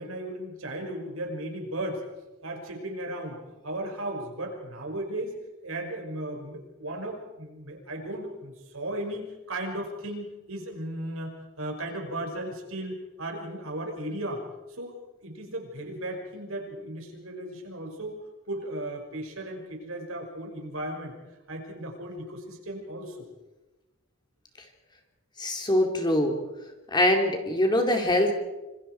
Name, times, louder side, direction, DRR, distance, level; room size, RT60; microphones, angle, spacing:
voice 1, 0.0-2.0 2.4-3.4 3.6-5.3 5.6-14.4 14.7-18.2 18.5-21.1 21.5-23.3, right 1 dB, 70° right, 2 dB, 5.8 m, -36 dB
voice 2, 25.4-26.3 26.9-28.3, left 1 dB, 20° left, 3 dB, 2.9 m, -23 dB
27.0 x 26.5 x 4.6 m, 1.1 s
head